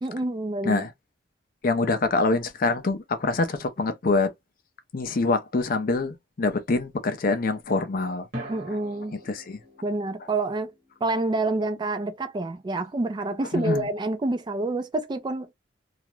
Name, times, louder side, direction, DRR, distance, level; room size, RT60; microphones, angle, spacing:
voice 1, 0.0-0.9 8.5-9.1 9.8-10.7 11.0-15.5, right 2 dB, 25° right, 0.3 m, -28 dB
voice 2, 1.6-4.3 4.9-8.3 9.3-9.6 13.5-13.8, left 3 dB, 45° left, 0.5 m, -25 dB
sound 1, 3.0-3.5 8.3-12.6, right 1 dB, 50° right, 1.2 m, -44 dB
2.4 x 2.1 x 2.9 m
head